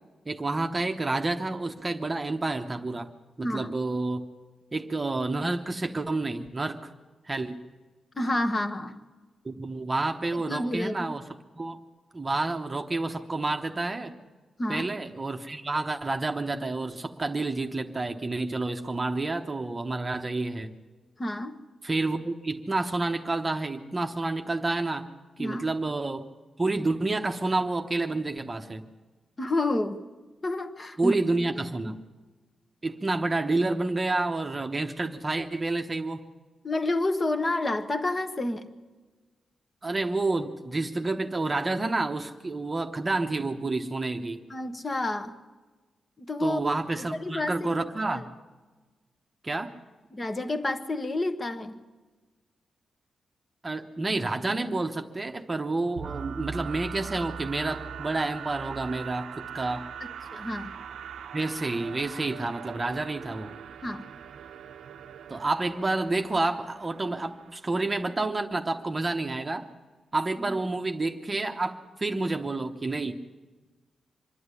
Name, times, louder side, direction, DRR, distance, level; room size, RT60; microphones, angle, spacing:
voice 1, 0.3-3.1 3.4-4.2 4.7-6.9 7.2-7.6 9.4-11.8 12.1-14.1 14.7-20.7 21.8-25.1 25.4-26.3 26.6-28.8 31.0-32.0 32.8-36.3 39.8-44.4 46.4-48.2 49.4-49.7 53.6-59.9 61.3-63.6 65.3-69.7 70.1-73.1, right 2 dB, 20° right, 4 dB, 1.0 m, -29 dB
voice 2, 8.2-9.0 10.3-11.1 14.6-14.9 21.2-21.6 25.4-25.7 29.4-30.0 30.4-31.2 31.8-31.9 36.6-38.7 44.5-45.4 46.2-46.6 47.0-48.2 50.1-51.8 60.3-60.8 63.8-64.0 70.4-70.6, left 2 dB, 25° left, 9 dB, 1.2 m, -30 dB
sound 1, 56.0-67.7, right 7 dB, 85° right, 0.8 m, -41 dB
25.5 x 11.0 x 9.8 m, 1.3 s
wide cardioid pair, 155°, 0 cm